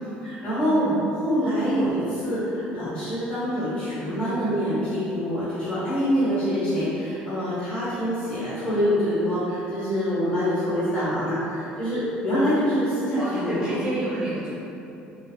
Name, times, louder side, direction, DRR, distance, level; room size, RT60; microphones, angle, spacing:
voice 1, 0.2-0.9 1.2-13.6, equal, 30° left, -13 dB, 1.2 m, -25 dB
voice 2, 13.2-14.5, right 1 dB, 20° right, -9 dB, 1.1 m, -29 dB
3.2 x 2.3 x 2.3 m, 2.9 s
cardioid pair, 100°, 4 cm